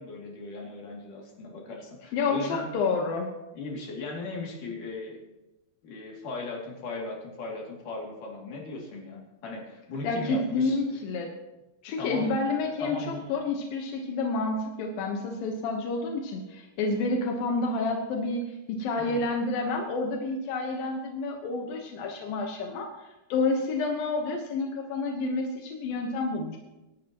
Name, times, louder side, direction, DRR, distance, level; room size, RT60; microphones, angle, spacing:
voice 1, 0.0-2.7 3.5-5.2 5.8-10.8 12.0-12.3 12.8-13.2 19.0-19.2, left 3 dB, 65° left, -2 dB, 4.1 m, -38 dB
voice 2, 2.1-3.3 10.0-11.3 11.8-22.9 23.3-26.6, left 3 dB, 90° left, 2 dB, 3.0 m, -29 dB
27.0 x 11.5 x 3.0 m, 1.0 s
omnidirectional pair, 4.0 m